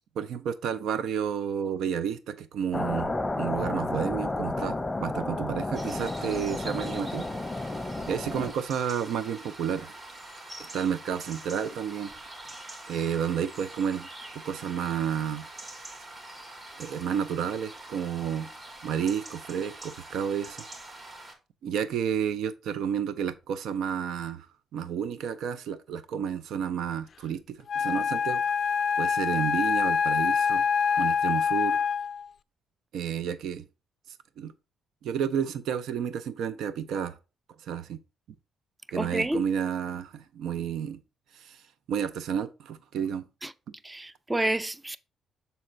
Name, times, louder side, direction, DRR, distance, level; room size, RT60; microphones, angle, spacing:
voice 1, 0.2-7.3 8.1-9.9 10.7-12.1 12.9-15.5 16.8-18.5 18.8-20.6 21.6-24.5 24.7-28.4 29.0-30.6 31.0-31.8 32.9-33.7 34.4-34.5 35.0-37.2 37.6-38.0 38.9-41.0 41.3-41.6 41.9-43.3, right 8 dB, 80° right, 0.5 m, -31 dB
sound 1, 2.7-8.5, left 2 dB, 15° left, 0.8 m, -31 dB
sound 2, 5.8-21.3, right 2 dB, 40° right, 2.8 m, -44 dB
Wind instrument woodwind instrument, 27.7-32.3, left 6 dB, 50° left, 0.4 m, -25 dB
voice 2, 38.9-39.4 43.4-43.5 43.8-45.0, right 1 dB, 15° right, 0.5 m, -29 dB
7.0 x 4.2 x 3.8 m
cardioid pair, 90°, 0 cm